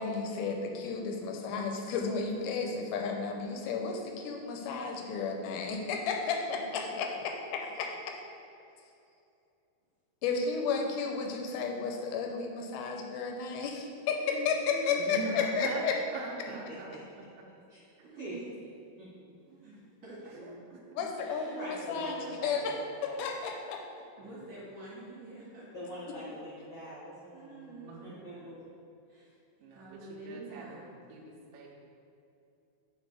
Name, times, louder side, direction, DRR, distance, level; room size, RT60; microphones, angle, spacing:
voice 1, 0.0-7.9 10.2-16.0 21.0-22.7 23.0-23.8, left 5 dB, 85° left, 3 dB, 2.4 m, -33 dB
voice 2, 6.5-7.0 9.0-9.2 14.6-15.1 15.6-15.7 16.1-16.7 18.0-18.5 19.5-20.6 21.2-21.7 22.0-22.3 24.2-25.7 26.2-26.3 27.3-28.5 29.1-29.3 29.7-30.9, right 2 dB, 55° right, -9 dB, 2.4 m, -48 dB
voice 3, 15.0-15.8 16.1-17.0 17.4-17.5 18.0-18.1 20.4-20.6 21.0-21.1 27.9-28.1 29.6-30.8 31.1-31.7, right 3 dB, 80° right, -2 dB, 2.5 m, -42 dB
voice 4, 16.7-17.0 17.7-17.8 18.2-18.4 19.0-19.1 21.4-23.3 25.7-28.6, equal, 65° left, -8 dB, 1.5 m, -44 dB
8.3 x 4.3 x 3.4 m, 2.6 s
omnidirectional pair, 4.5 m